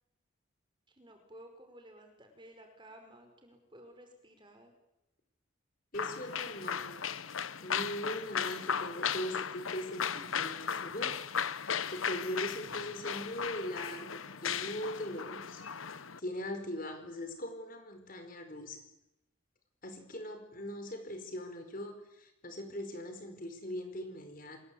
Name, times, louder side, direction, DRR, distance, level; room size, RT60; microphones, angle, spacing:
voice 1, 0.9-4.7, right 1 dB, 25° right, 5 dB, 5.2 m, -55 dB
sound 1, 5.9-16.2, left 7 dB, 90° left, 1.1 m, -36 dB
voice 2, 5.9-7.1 7.6-15.6 16.2-18.8 19.8-24.6, equal, 45° left, 7 dB, 5.0 m, -40 dB
28.0 x 21.5 x 8.7 m, 0.89 s
head